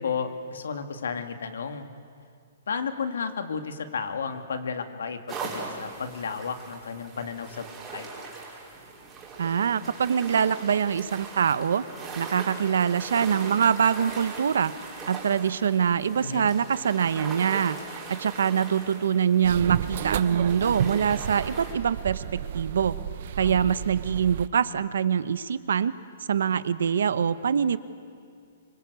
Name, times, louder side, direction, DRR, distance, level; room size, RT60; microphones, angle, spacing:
voice 1, 0.0-1.9 2.7-8.1 16.2-16.5 23.4-23.7, left 5 dB, 85° left, 7 dB, 2.4 m, -33 dB
sound 1, 5.3-21.7, right 4 dB, 15° right, 4.3 m, -40 dB
voice 2, 9.4-11.8 12.2-14.7 15.1-23.0 23.4-25.9 26.3-27.8, right 7 dB, 75° right, 15 dB, 1.0 m, -24 dB
sound 2, 19.4-24.5, right 11 dB, 45° right, 0.6 m, -32 dB
25.5 x 24.0 x 8.2 m, 2.3 s
hypercardioid pair, 170°, 0 cm